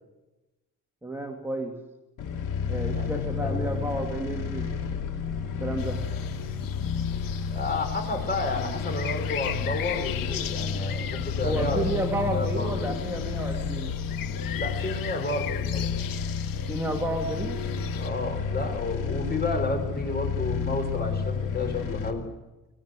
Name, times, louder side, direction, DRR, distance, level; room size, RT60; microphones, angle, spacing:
voice 1, 1.0-1.8 2.7-4.7 5.6-6.0 11.4-13.9 16.7-17.6, right 1 dB, 5° right, 1 dB, 2.5 m, -31 dB
sound 1, 2.2-22.1, left 6 dB, 70° left, 2.6 m, -31 dB
voice 2, 2.9-3.9 7.5-12.9 14.6-15.9 18.0-22.2, left 2 dB, 30° left, 4 dB, 5.8 m, -31 dB
sound 2, 5.8-18.1, left 10 dB, 85° left, 1.3 m, -39 dB
25.0 x 19.5 x 8.4 m, 1.0 s
cardioid pair, 135°, 33 cm